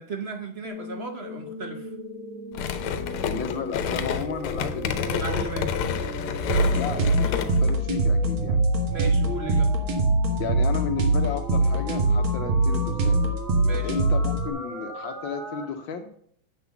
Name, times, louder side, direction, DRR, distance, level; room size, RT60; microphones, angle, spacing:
voice 1, 0.0-1.9 5.1-5.7 8.9-9.8 13.6-14.0, right 4 dB, 55° right, 5 dB, 0.7 m, -35 dB
sound 1, 0.6-15.7, right 1 dB, 35° right, 2.2 m, -38 dB
sound 2, 2.5-7.7, left 7 dB, 85° left, 1.7 m, -29 dB
voice 2, 3.1-5.2 6.7-8.6 10.4-13.2 13.8-16.1, left 7 dB, 70° left, 5 dB, 1.5 m, -33 dB
sound 3, 6.5-14.5, right 2 dB, 70° right, 2.3 m, -23 dB
8.0 x 5.9 x 7.0 m, 0.63 s
omnidirectional pair, 2.3 m